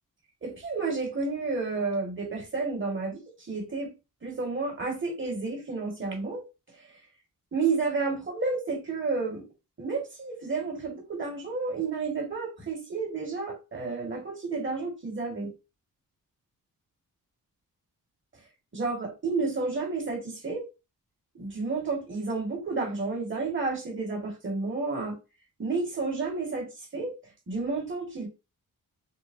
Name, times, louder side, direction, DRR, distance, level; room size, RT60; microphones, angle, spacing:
voice 1, 0.4-3.2 3.5-3.9 4.2-6.4 7.5-9.4 9.8-15.5 18.7-20.7 21.4-25.2 25.6-27.1 27.5-28.3, right 4 dB, 35° right, 1.9 m, -31 dB
6.5 x 2.3 x 2.7 m
cardioid pair, 90°, 34 cm